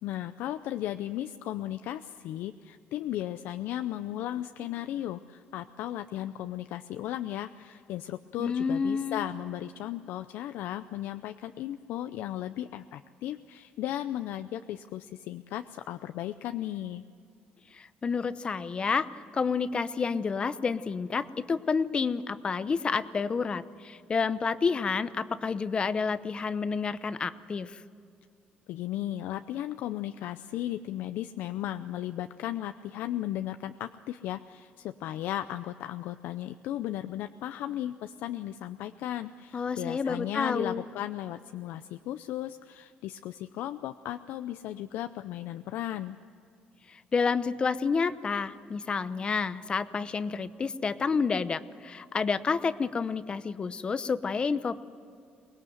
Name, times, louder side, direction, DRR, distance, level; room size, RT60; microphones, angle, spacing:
voice 1, 0.0-17.0 28.7-46.2, left 13 dB, 85° left, 9 dB, 0.6 m, -35 dB
voice 2, 8.4-9.3 17.7-27.8 39.5-40.8 46.9-54.8, left 5 dB, 30° left, 14 dB, 0.8 m, -29 dB
24.0 x 20.0 x 7.9 m, 2.4 s
cardioid pair, 130°, 3 cm